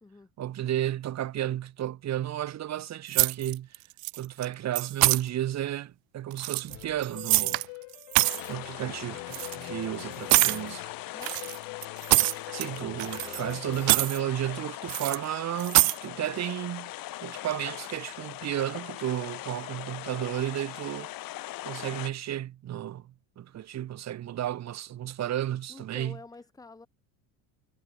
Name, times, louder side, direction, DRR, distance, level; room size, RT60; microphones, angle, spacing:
voice 1, 0.4-3.8 4.1-7.6 8.5-10.9 12.5-16.9 17.2-21.1 21.6-26.2, right 12 dB, 40° right, 1.8 m, -33 dB
sound 1, 3.1-3.8 4.0-4.5 4.8-5.2 6.3-7.7 7.9-8.5 9.3-9.6 10.3-10.6 11.2-12.7 13.0-13.5 13.8-14.2 14.9-15.2 15.6-16.0, right 26 dB, 55° right, 0.5 m, -24 dB
sound 2, 6.7-13.9, left 32 dB, 80° left, 3.0 m, -44 dB
sound 3, 8.2-22.1, left 16 dB, 55° left, 2.7 m, -41 dB
voice 2, 12.7-13.6 25.7-26.9, left 3 dB, 10° left, 1.7 m, -48 dB
cardioid pair, 145°, 42 cm